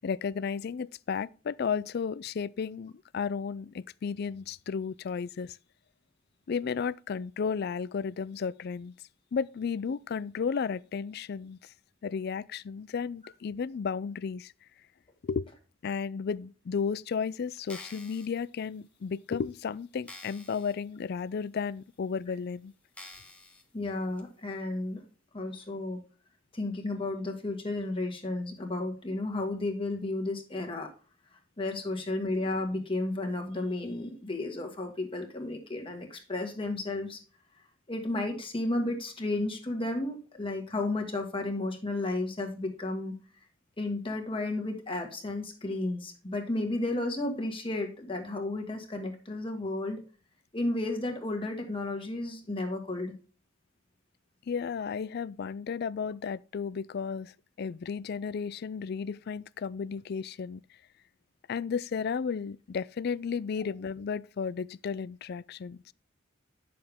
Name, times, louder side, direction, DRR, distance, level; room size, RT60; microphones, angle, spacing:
voice 1, 0.0-5.6 6.5-8.9 9.3-11.6 12.0-14.5 15.2-15.5 15.8-22.7 54.5-60.6 61.5-65.8, left 6 dB, 50° left, 0.3 m, -33 dB
sound 1, 17.6-18.3 19.0-19.1 19.5-19.6 20.1-20.7 21.2-21.3 22.0-22.1 22.9-23.6 24.2-24.3, left 2 dB, 5° left, 1.2 m, -48 dB
voice 2, 23.7-25.0 25.3-26.0 26.5-30.9 31.6-37.2 37.9-43.2 43.8-50.0 50.5-53.1, left 2 dB, 25° left, 1.8 m, -33 dB
10.0 x 6.8 x 3.5 m
head